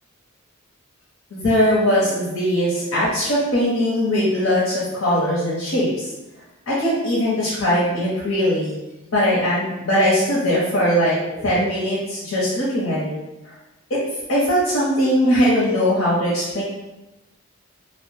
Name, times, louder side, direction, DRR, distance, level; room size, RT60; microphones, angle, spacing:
voice 1, 1.3-6.1 6.7-8.7 9.1-13.1 13.9-14.0 14.3-16.6, equal, 80° left, -7 dB, 0.8 m, -20 dB
2.8 x 2.0 x 3.1 m, 0.97 s
head